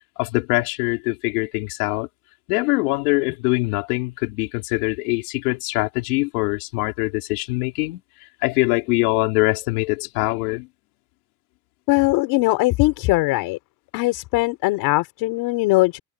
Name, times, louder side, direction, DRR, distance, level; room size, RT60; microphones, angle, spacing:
voice 1, 0.2-2.1 2.5-8.0 8.4-10.7, left 26 dB, 80° left, 4.2 m, -23 dB
voice 2, 11.9-13.6 13.9-16.0, left 21 dB, 55° left, 5.0 m, -20 dB
cardioid pair, 165°, 45 cm